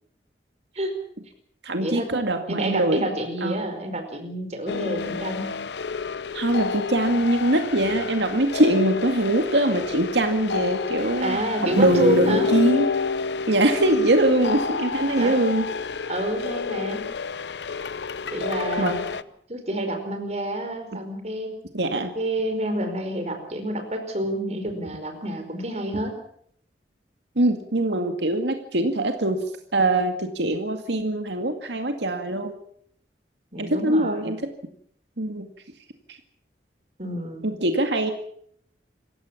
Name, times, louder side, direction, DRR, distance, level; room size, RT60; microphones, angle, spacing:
voice 1, 1.6-3.1 3.4-3.7 6.3-11.4 11.8-12.9 13.5-15.7 18.8-19.0 20.9-21.1 21.7-22.2 27.4-29.5 29.7-32.6 33.6-34.4 35.2-35.5 36.1-36.2 37.4-38.1, right 1 dB, 85° right, 5 dB, 2.2 m, -22 dB
voice 2, 2.5-5.5 11.2-12.5 15.2-15.4 16.1-17.0 18.3-19.0 19.5-21.5 22.1-26.2 33.5-34.3 37.0-37.4, right 1 dB, 40° right, 6 dB, 4.9 m, -28 dB
sound 1, 4.7-19.2, left 5 dB, 80° left, 0.8 m, -29 dB
27.0 x 15.5 x 7.4 m, 0.65 s
head